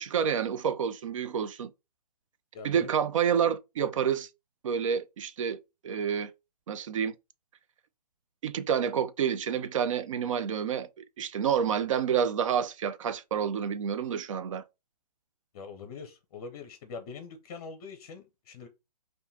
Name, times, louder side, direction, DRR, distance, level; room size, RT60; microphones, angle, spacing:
voice 1, 0.0-1.7 2.6-4.3 4.6-5.6 5.8-6.3 6.7-7.1 8.4-10.9 11.2-14.6, right 8 dB, 50° right, 0.5 m, -28 dB
voice 2, 2.5-2.9 15.5-18.7, left 5 dB, 35° left, 0.7 m, -43 dB
5.4 x 2.6 x 2.7 m
hypercardioid pair, 140°, 21 cm